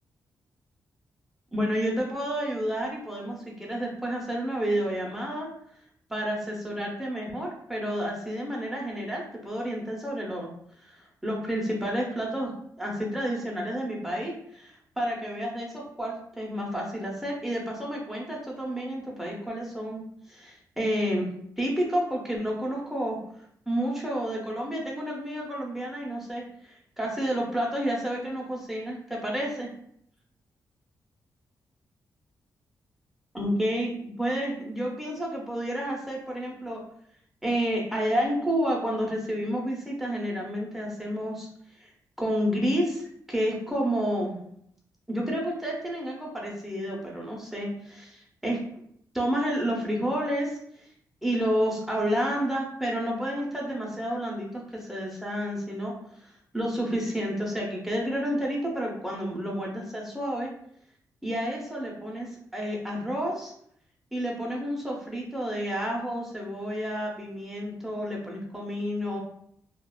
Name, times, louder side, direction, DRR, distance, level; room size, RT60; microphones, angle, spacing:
voice 1, 1.5-5.5 6.1-10.5 10.8-12.5 12.8-21.3 21.6-29.7 33.3-36.8 37.4-41.9 42.2-44.4 45.1-48.6 49.1-50.9 51.2-60.5 61.2-63.5 64.1-69.2, equal, 5° right, -2 dB, 0.5 m, -30 dB
2.7 x 2.1 x 2.2 m, 0.68 s
wide cardioid pair, 130°, 7 cm